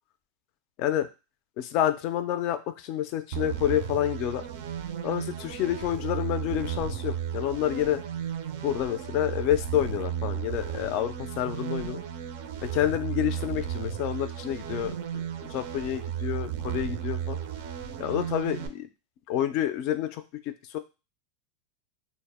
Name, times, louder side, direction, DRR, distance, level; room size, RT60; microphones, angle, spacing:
voice 1, 1.6-4.5 5.0-8.0 8.6-12.0 12.6-15.0 15.5-17.4 18.0-18.9 19.3-20.8, left 11 dB, 50° left, 11 dB, 0.3 m, -28 dB
sound 1, 3.3-18.7, right 9 dB, 65° right, 0.4 m, -34 dB
2.0 x 2.0 x 3.4 m, 0.29 s
hypercardioid pair, 120°, 0 cm